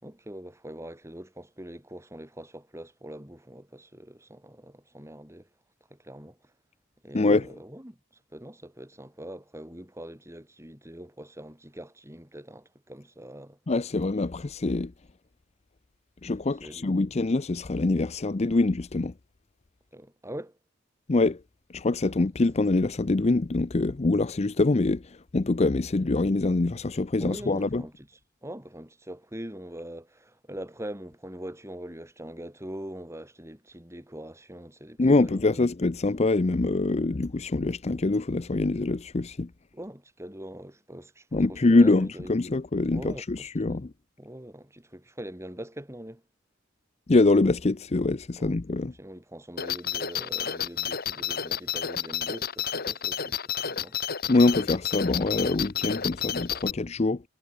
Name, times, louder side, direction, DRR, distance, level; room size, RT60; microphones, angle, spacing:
voice 1, 0.0-5.5 5.9-6.4 7.0-13.6 16.6-16.9 19.9-20.6 27.2-35.7 39.7-42.4 42.9-43.8 44.2-46.2 48.4-48.6 49.0-54.0, right 1 dB, 15° right, 4.5 m, -43 dB
voice 2, 7.1-7.5 13.7-14.9 16.2-19.1 21.1-21.4 21.7-27.8 35.0-39.5 41.3-43.9 47.1-48.9 54.3-57.2, left 2 dB, 30° left, 0.5 m, -24 dB
sound 1, 49.6-56.7, left 8 dB, 50° left, 2.4 m, -31 dB
head